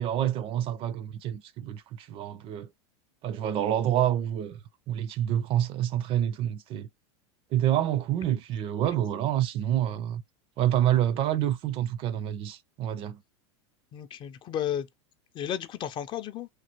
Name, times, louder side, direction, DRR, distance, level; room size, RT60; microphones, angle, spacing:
voice 1, 0.0-2.7 3.2-4.6 4.9-6.9 7.5-10.2 10.6-13.2, right 11 dB, 40° right, 0.4 m, -27 dB
voice 2, 13.9-14.9 15.3-16.5, left 10 dB, 35° left, 0.4 m, -33 dB
3.2 x 2.3 x 2.8 m
hypercardioid pair, 105°, 15 cm